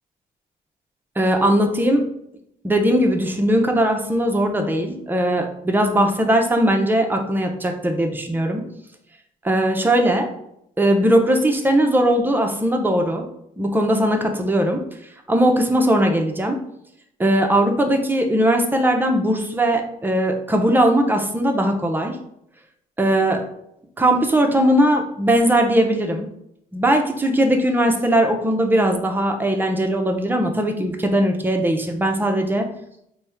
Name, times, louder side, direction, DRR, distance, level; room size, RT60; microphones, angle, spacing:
voice 1, 1.2-2.0 2.6-8.7 9.4-10.3 10.8-13.2 13.6-14.8 15.3-16.6 17.2-22.2 23.0-23.4 24.0-26.3 26.7-32.7, right 1 dB, 10° right, 3 dB, 0.7 m, -19 dB
4.1 x 2.3 x 3.5 m, 0.76 s
supercardioid pair, 55°, 17 cm